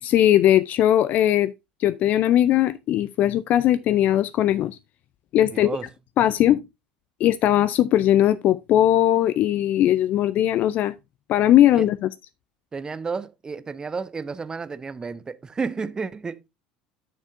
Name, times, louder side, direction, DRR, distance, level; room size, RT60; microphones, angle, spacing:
voice 1, 0.0-1.5 1.8-4.8 5.3-5.7 6.2-6.6 7.2-10.9 11.3-12.1, left 12 dB, 45° left, 0.4 m, -19 dB
voice 2, 5.4-5.9 11.7-11.9 12.7-16.5, right 5 dB, 20° right, 0.5 m, -32 dB
10.5 x 6.5 x 2.7 m
figure-of-eight pair, 70°, 4 cm